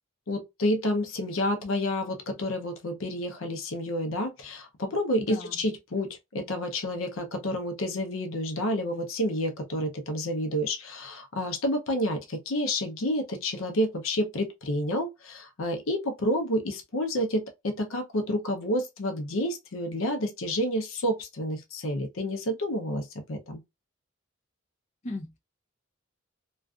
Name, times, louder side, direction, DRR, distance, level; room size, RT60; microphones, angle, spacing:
voice 1, 0.3-23.6, equal, 85° left, 0.7 m, -29 dB
voice 2, 5.2-5.6 25.0-25.4, left 2 dB, 35° left, 0.5 m, -36 dB
2.4 x 2.4 x 2.3 m
head